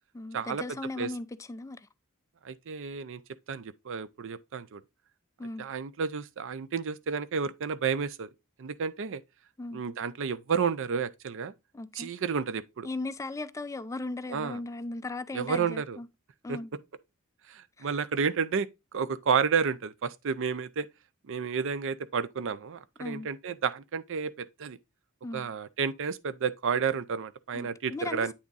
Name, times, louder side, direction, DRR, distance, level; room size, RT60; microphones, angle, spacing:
voice 1, 0.1-1.9 5.4-5.7 9.6-9.8 11.7-12.1 12.8-16.1 16.4-16.7 17.8-17.9 23.0-23.3 25.2-25.5 27.5-28.3, left 2 dB, 15° left, 0.3 m, -37 dB
voice 2, 2.4-3.2 3.5-4.8 5.6-8.3 8.6-9.2 9.7-11.5 11.9-12.9 14.3-14.6 15.3-16.0 16.5-16.6 17.5-20.9 21.3-24.8 25.3-28.3, right 6 dB, 65° right, 0.5 m, -31 dB
8.6 x 3.5 x 3.9 m
head